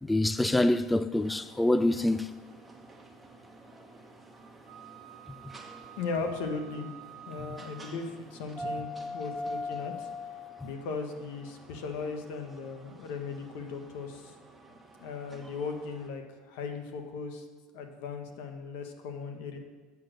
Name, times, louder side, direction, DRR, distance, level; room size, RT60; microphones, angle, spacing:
voice 1, 0.0-2.3, left 1 dB, 10° left, 0.3 m, -25 dB
sound 1, 1.2-16.1, left 2 dB, 10° right, 1.5 m, -45 dB
Wind instrument woodwind instrument, 4.7-8.2, right 12 dB, 75° right, 0.8 m, -50 dB
voice 2, 6.0-6.9 7.3-10.1 10.6-14.3 15.0-17.4 17.7-19.6, left 4 dB, 75° left, 1.4 m, -37 dB
8.6 x 7.6 x 6.6 m
supercardioid pair, 100°, 0 cm